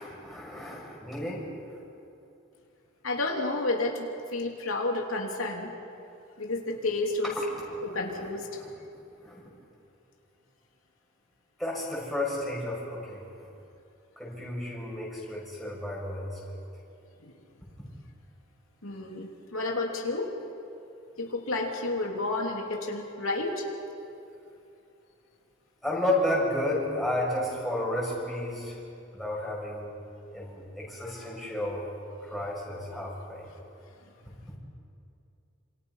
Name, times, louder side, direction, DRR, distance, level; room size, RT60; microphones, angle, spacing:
voice 1, 0.0-1.4 1.7-1.8 8.1-8.3 8.5-8.7 9.2-9.4 11.6-13.2 14.2-16.3 25.8-28.8 29.1-29.9 30.3-31.8 32.2-33.5, left 1 dB, ahead, -5 dB, 7.2 m, -32 dB
voice 2, 3.0-5.7 6.4-7.4 7.8-8.5 17.2-17.3 18.8-20.3 21.2-23.6, left 2 dB, 85° left, 0 dB, 3.1 m, -31 dB
29.0 x 27.0 x 5.7 m, 2.7 s
head